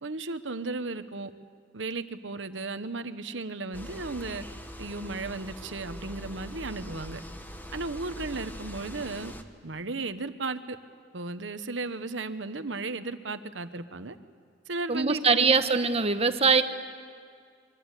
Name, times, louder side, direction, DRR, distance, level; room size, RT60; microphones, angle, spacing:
voice 1, 0.0-1.3 1.7-4.4 4.8-7.2 7.7-9.3 9.6-10.8 11.1-14.2 14.7-15.5, right 3 dB, 75° right, 10 dB, 1.1 m, -35 dB
sound 1, 3.7-9.4, equal, 10° left, 1.4 m, -42 dB
voice 2, 14.9-16.6, right 4 dB, 35° right, 9 dB, 1.1 m, -22 dB
26.0 x 23.0 x 8.3 m, 2.2 s
head